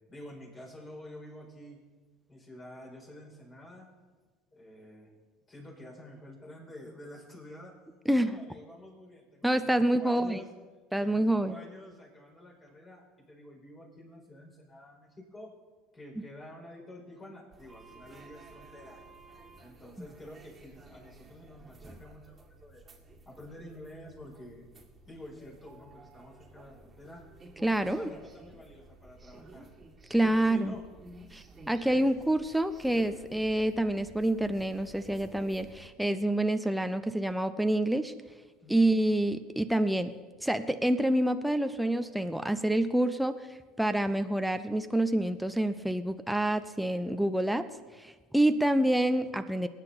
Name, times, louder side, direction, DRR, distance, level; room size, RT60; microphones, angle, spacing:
voice 1, 0.0-1.8 2.3-3.9 4.5-5.1 5.5-7.7 8.1-10.5 11.0-15.5 15.9-19.0 19.6-22.8 23.2-24.6 25.0-27.2 27.8-29.7 30.2-30.8 31.8-32.2 38.6-38.9, left 1 dB, 25° left, -2 dB, 5.1 m, -49 dB
voice 2, 8.1-8.4 9.4-10.4 10.9-11.6 27.6-28.1 30.1-30.7 31.3-38.1 38.7-40.1 40.4-43.5 43.8-47.7 48.0-49.7, right 1 dB, ahead, 9 dB, 0.7 m, -27 dB
sound 1, 17.5-35.9, right 2 dB, 25° right, 2.0 m, -53 dB
19.5 x 9.0 x 4.2 m, 1.3 s
hypercardioid pair, 85°, 0 cm